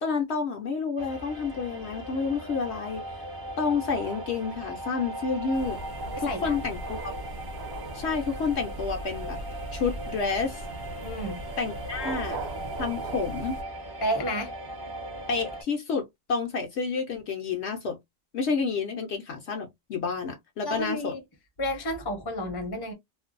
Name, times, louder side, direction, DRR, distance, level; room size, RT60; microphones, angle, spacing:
voice 1, 0.0-3.0 3.6-5.8 6.2-7.0 7.9-9.4 9.7-10.6 11.6-12.4 12.8-13.6 15.3-18.0 18.3-21.2, left 5 dB, 65° left, 0.8 m, -29 dB
sound 1, 1.0-15.6, right 1 dB, 25° right, 0.5 m, -39 dB
sound 2, 3.8-9.5 11.8-13.5, right 5 dB, 60° right, 0.9 m, -43 dB
sound 3, 5.5-13.6, right 1 dB, 85° right, 0.4 m, -40 dB
voice 2, 6.1-6.6 11.0-11.4 14.0-14.5 20.6-21.2 21.6-22.9, equal, 25° left, 0.6 m, -31 dB
2.5 x 2.1 x 2.4 m
omnidirectional pair, 1.4 m